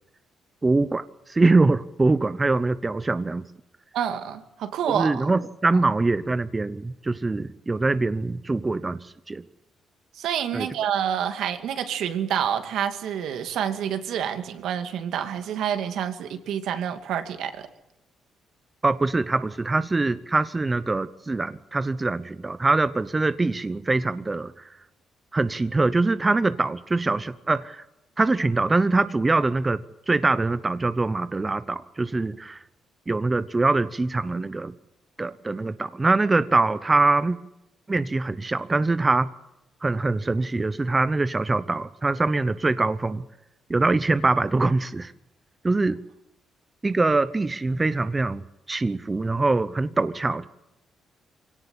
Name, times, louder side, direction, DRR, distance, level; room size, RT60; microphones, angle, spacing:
voice 1, 0.6-3.4 4.9-9.4 10.5-10.7 18.8-24.7 25.3-27.8 28.2-32.6 33.1-34.7 35.2-37.4 37.9-39.3 39.8-43.2 43.7-45.1 45.6-46.0 46.8-50.5, right 3 dB, 20° right, 13 dB, 0.9 m, -23 dB
voice 2, 3.9-5.3 10.2-17.7, right 9 dB, 80° right, 7 dB, 2.5 m, -28 dB
23.5 x 17.5 x 8.6 m, 0.92 s
cardioid pair, 90°, 0 cm